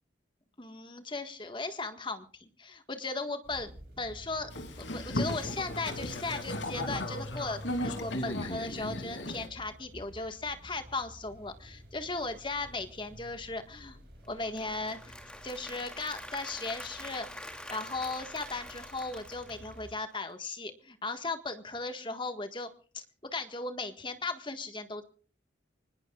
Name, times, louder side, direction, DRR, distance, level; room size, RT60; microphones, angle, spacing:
voice 1, 0.6-4.5 4.8-14.0 14.3-15.1 15.4-22.7 22.9-25.0, left 3 dB, 25° left, 7 dB, 1.6 m, -37 dB
sound 1, 3.4-19.9, equal, 55° right, 5.7 m, -52 dB
Boat Water vehicle, 4.5-9.5, left 1 dB, 80° left, 3.0 m, -35 dB
Applause / Crowd, 14.2-20.3, left 1 dB, 5° left, 2.7 m, -46 dB
25.0 x 20.0 x 2.4 m, 0.43 s
head